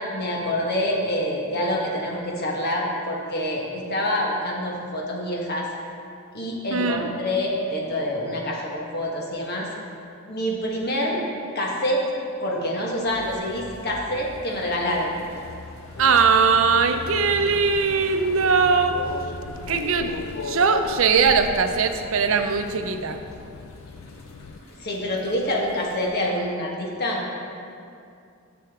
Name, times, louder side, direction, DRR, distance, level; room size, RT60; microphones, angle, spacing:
voice 1, 0.0-5.7 6.3-9.7 10.3-11.2 11.5-12.0 12.4-15.1 24.8-27.2, left 1 dB, 50° left, -2 dB, 1.4 m, -26 dB
voice 2, 6.7-7.1 16.0-19.0 19.7-20.1 20.4-23.2, right 5 dB, 70° right, 7 dB, 0.6 m, -20 dB
sound 1, 13.0-26.1, left 1 dB, 90° left, 1.4 m, -43 dB
sound 2, 15.9-24.6, left 5 dB, 70° left, 0.3 m, -37 dB
11.0 x 6.9 x 3.6 m, 2.5 s
head